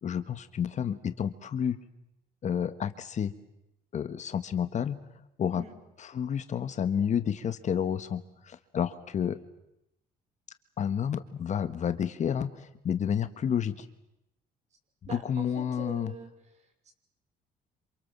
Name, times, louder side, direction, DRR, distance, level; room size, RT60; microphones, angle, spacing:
voice 1, 0.0-1.7 2.4-3.3 3.9-5.0 5.4-5.6 6.0-9.4 10.8-13.9 15.1-16.1, left 8 dB, 45° left, 11 dB, 1.6 m, -30 dB
voice 2, 15.1-16.3 16.5-16.9, right 4 dB, 40° right, 6 dB, 6.0 m, -44 dB
27.5 x 27.5 x 7.5 m, 0.85 s
cardioid pair, 110°, 17 cm